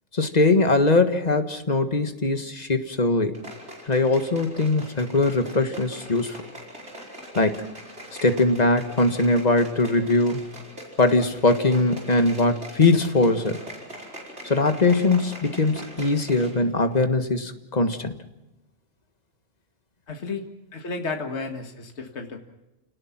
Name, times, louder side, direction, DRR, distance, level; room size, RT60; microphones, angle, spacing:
voice 1, 0.1-3.4 3.9-6.4 7.3-7.6 8.2-10.4 11.0-13.6 14.4-18.2, left 2 dB, 35° left, 8 dB, 1.6 m, -21 dB
sound 1, 3.3-16.6 16.9-17.0, equal, 60° right, 5.3 m, -42 dB
voice 2, 20.1-20.5 20.7-22.4, left 3 dB, 60° left, 3 dB, 2.1 m, -32 dB
29.0 x 18.5 x 6.0 m, 0.96 s
omnidirectional pair, 1.3 m